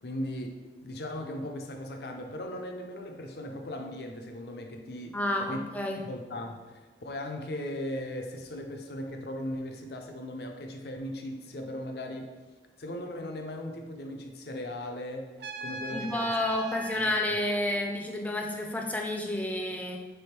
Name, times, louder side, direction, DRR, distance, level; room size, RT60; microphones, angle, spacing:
voice 1, 0.0-5.2 5.5-5.6 6.0-12.3 12.8-15.3 15.6-16.4 16.9-17.4, left 1 dB, 65° left, 3 dB, 0.5 m, -38 dB
voice 2, 5.1-6.0 15.9-20.0, left 1 dB, 10° left, 2 dB, 0.4 m, -30 dB
Trumpet, 15.4-17.4, right 3 dB, 65° right, 0.4 m, -39 dB
3.5 x 3.5 x 4.4 m, 1.3 s
head